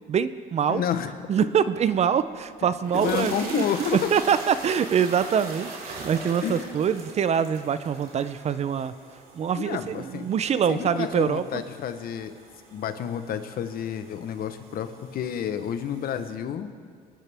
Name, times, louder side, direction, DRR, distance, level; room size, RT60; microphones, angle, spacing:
voice 1, 0.1-0.8 1.3-8.9 9.3-11.6, right 7 dB, 40° right, 14 dB, 0.5 m, -24 dB
voice 2, 0.7-1.2 2.9-4.1 6.4-6.8 9.6-10.3 10.7-12.4 12.7-16.8, left 9 dB, 60° left, 10 dB, 1.0 m, -30 dB
sound 1, 2.0-2.1 2.7-16.3, right 3 dB, 60° right, 2.6 m, -41 dB
22.5 x 11.0 x 3.5 m, 2.1 s
cardioid pair, 110°, 17 cm